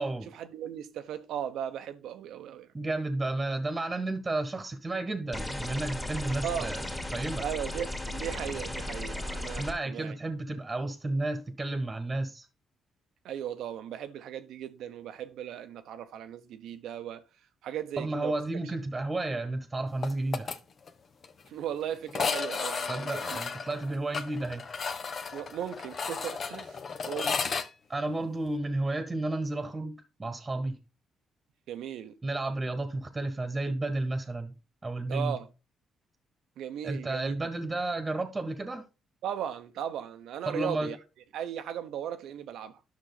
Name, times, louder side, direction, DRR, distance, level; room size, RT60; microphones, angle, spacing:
voice 1, 0.3-2.7 6.4-6.7 7.4-10.2 13.2-17.2 17.6-18.3 21.5-23.4 25.3-26.8 27.1-27.6 31.7-32.2 35.1-35.5 36.6-37.7 39.2-41.0 41.3-42.8, right 10 dB, 80° right, 0.9 m, -37 dB
voice 2, 2.7-7.4 9.6-12.4 18.0-20.5 22.9-24.7 27.9-30.8 32.2-34.5 34.8-35.4 36.8-38.9 40.5-40.9, right 2 dB, 20° right, 1.4 m, -32 dB
sound 1, 5.3-9.7, left 1 dB, 10° left, 2.1 m, -36 dB
sound 2, 20.0-20.6 20.9-21.0 21.2-21.3 22.1-27.7, left 5 dB, 50° left, 0.9 m, -33 dB
10.5 x 6.2 x 4.0 m
cardioid pair, 90°, 0 cm